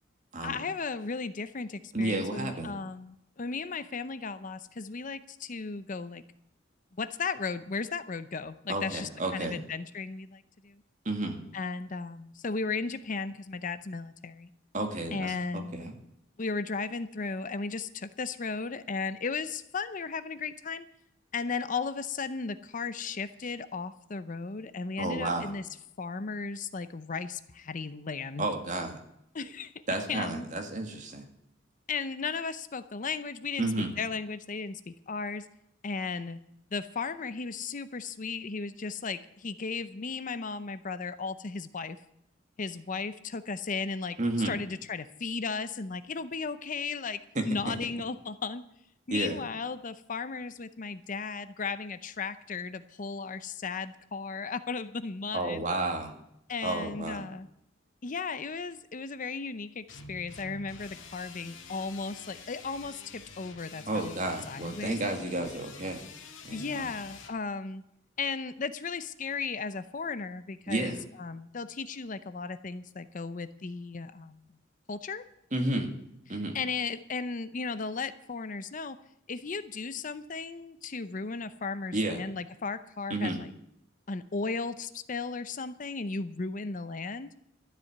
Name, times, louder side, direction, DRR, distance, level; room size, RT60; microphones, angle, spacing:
voice 1, 0.4-6.2 6.9-10.8 11.5-14.5 15.1-15.9 16.4-20.9 21.3-25.6 26.0-28.5 29.3-29.8 30.1-30.5 31.9-33.7 34.0-35.5 35.8-36.4 36.7-42.0 42.6-44.2 44.4-48.6 49.1-55.7 56.5-57.5 58.0-65.3 66.5-67.8 68.2-74.5 74.9-75.2 76.5-79.0 79.3-83.5 84.1-87.3, left 4 dB, 40° left, 13 dB, 0.6 m, -35 dB
voice 2, 1.9-2.7 8.7-9.6 11.1-11.4 14.7-15.9 25.0-25.5 28.4-29.0 29.9-31.3 33.6-33.9 44.2-44.5 47.4-47.8 49.1-49.4 55.3-56.2 56.6-57.3 63.9-66.0 66.4-66.9 70.7-71.0 75.5-75.9 76.3-76.6 81.9-82.2 83.1-83.4, right 2 dB, 40° right, 4 dB, 2.1 m, -31 dB
sound 1, 59.9-67.3, left 4 dB, 80° left, 1.9 m, -48 dB
13.0 x 7.6 x 9.5 m, 0.77 s
head